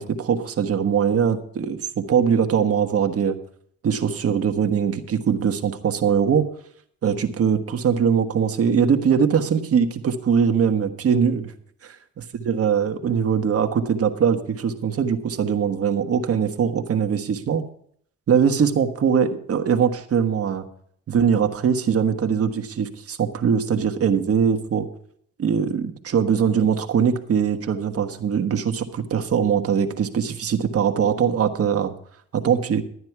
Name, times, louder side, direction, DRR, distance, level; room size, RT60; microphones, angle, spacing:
voice 1, 0.0-3.4 3.8-6.5 7.0-11.5 12.4-17.6 18.3-20.7 21.1-24.9 25.4-31.9 32.3-32.8, right 7 dB, 50° right, 7 dB, 1.4 m, -21 dB
12.5 x 9.5 x 4.7 m, 0.63 s
cardioid pair, 90°, 30 cm